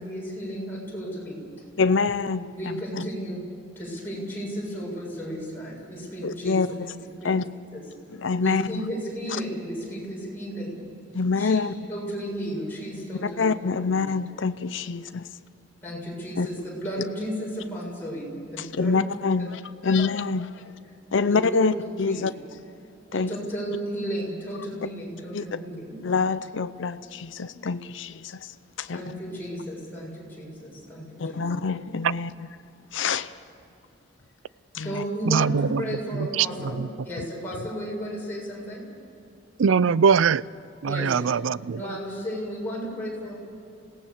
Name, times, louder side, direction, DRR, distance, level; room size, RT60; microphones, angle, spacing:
voice 1, 0.0-1.4 2.6-3.4 3.8-7.3 7.7-7.8 8.4-10.8 11.4-11.6 11.9-13.4 13.7-13.9 15.8-19.0 21.2-21.7 22.1-22.2 23.1-26.0 28.9-31.4 34.8-38.8 40.8-41.2 41.7-43.4, equal, 10° left, -5 dB, 7.3 m, -33 dB
voice 2, 1.8-2.6 3.0-3.1 6.2-6.7 7.2-7.4 8.1-8.8 11.1-11.7 13.2-15.2 16.4-16.5 18.6-20.5 21.1-22.3 23.1-23.3 25.3-25.4 26.0-29.1 31.2-32.3 32.9-33.3 34.7-35.0 37.2-37.3, left 4 dB, 70° left, 12 dB, 0.6 m, -26 dB
voice 3, 35.3-35.8 36.1-36.9 39.6-40.4 40.8-41.9, right 6 dB, 75° right, 20 dB, 0.4 m, -22 dB
26.5 x 18.0 x 7.2 m, 2.8 s
head